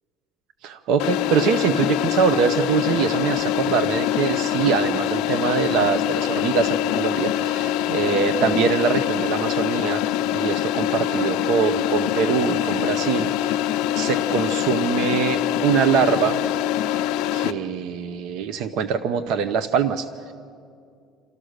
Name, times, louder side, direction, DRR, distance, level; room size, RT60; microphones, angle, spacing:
voice 1, 0.6-10.0 10.3-13.6 13.9-16.4 17.3-20.3, right 7 dB, 65° right, 11 dB, 0.7 m, -23 dB
sound 1, 1.0-17.5, left 12 dB, 80° left, 0.6 m, -24 dB
29.5 x 13.5 x 6.5 m, 2.3 s
cardioid pair, 165°, 0 cm